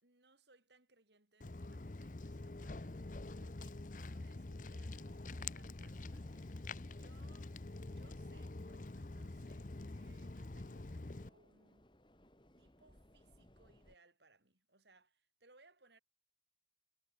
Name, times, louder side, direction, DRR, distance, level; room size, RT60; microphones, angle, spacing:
voice 1, 0.0-7.6 7.8-11.9 12.6-16.0, right 3 dB, 70° right, 5.6 m, -69 dB
Walk footsteps, 1.4-11.3, left 2 dB, 45° left, 0.8 m, -46 dB
sound 1, 4.8-14.0, left 1 dB, 25° left, 3.5 m, -66 dB
head